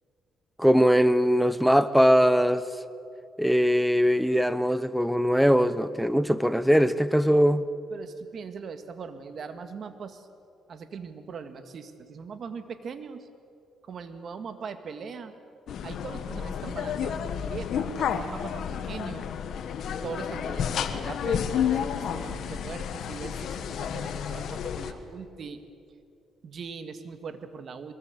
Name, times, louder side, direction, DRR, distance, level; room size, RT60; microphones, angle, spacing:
voice 1, 0.6-2.7 3.4-7.6, equal, ahead, 1.0 m, -21 dB
voice 2, 7.9-10.3 10.7-13.3 13.8-15.3 15.8-19.3 20.0-25.6 26.4-27.9, right 5 dB, 55° right, 1.9 m, -40 dB
sound 1, 15.7-24.9, left 8 dB, 70° left, 1.5 m, -31 dB
22.5 x 21.0 x 8.3 m
cardioid pair, 90°, 0 cm